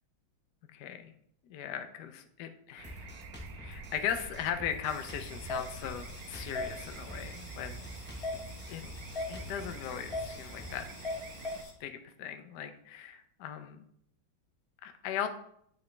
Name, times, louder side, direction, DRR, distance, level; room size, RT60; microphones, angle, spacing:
voice 1, 0.7-1.1 1.5-3.1 3.5-7.8 8.7-8.8 9.3-10.9 11.8-13.8 14.8-15.3, left 9 dB, 70° left, 7 dB, 1.0 m, -38 dB
Drum kit, 2.8-10.8, equal, 15° left, 0.4 m, -47 dB
sound 1, 2.8-11.6, right 4 dB, 70° right, 1.2 m, -48 dB
sound 2, 4.9-11.7, left 2 dB, 35° left, 1.3 m, -41 dB
8.1 x 4.1 x 3.2 m, 0.69 s
omnidirectional pair, 2.2 m